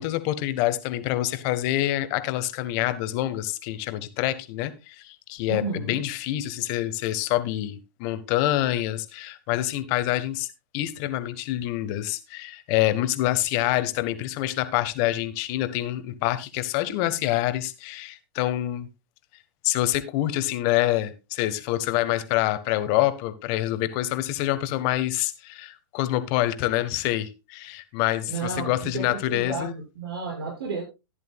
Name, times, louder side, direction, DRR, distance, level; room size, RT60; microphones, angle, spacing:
voice 1, 0.0-10.5 10.7-18.9 19.6-29.7, left 15 dB, 45° left, 1.4 m, -26 dB
voice 2, 5.5-6.0 28.3-30.8, right 4 dB, 75° right, 6.9 m, -32 dB
14.5 x 10.5 x 2.4 m
hypercardioid pair, 120°, 13 cm